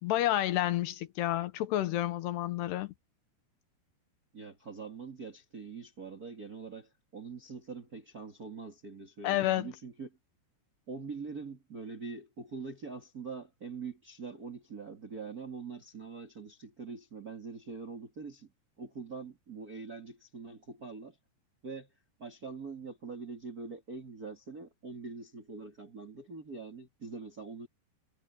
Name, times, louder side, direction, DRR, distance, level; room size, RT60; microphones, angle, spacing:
voice 1, 0.0-2.9 9.2-9.7, left 14 dB, 75° left, 3.1 m, -30 dB
voice 2, 4.3-10.1 10.9-18.5 18.8-21.2 21.6-21.9 22.2-27.7, right 4 dB, 35° right, 1.4 m, -43 dB
omnidirectional pair, 4.9 m